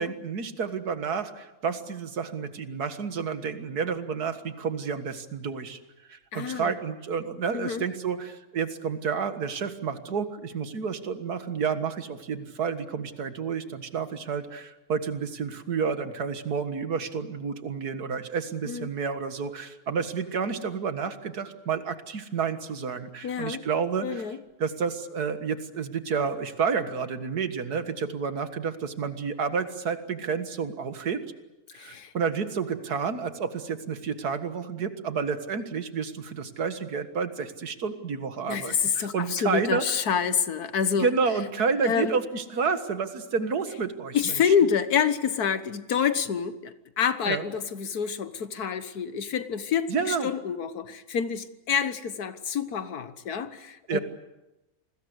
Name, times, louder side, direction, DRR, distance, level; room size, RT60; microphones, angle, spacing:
voice 1, 0.0-5.8 6.1-24.2 24.6-31.2 31.7-40.0 41.0-44.3 47.3-47.4 49.9-50.3 53.9-54.0, right 6 dB, 80° right, 10 dB, 2.2 m, -30 dB
voice 2, 6.3-6.7 7.5-7.8 18.7-18.9 23.2-23.7 24.0-24.4 31.7-32.1 38.5-41.1 41.8-42.2 44.1-54.0, left 7 dB, 75° left, 12 dB, 1.8 m, -27 dB
28.5 x 20.5 x 8.1 m, 0.98 s
omnidirectional pair, 1.6 m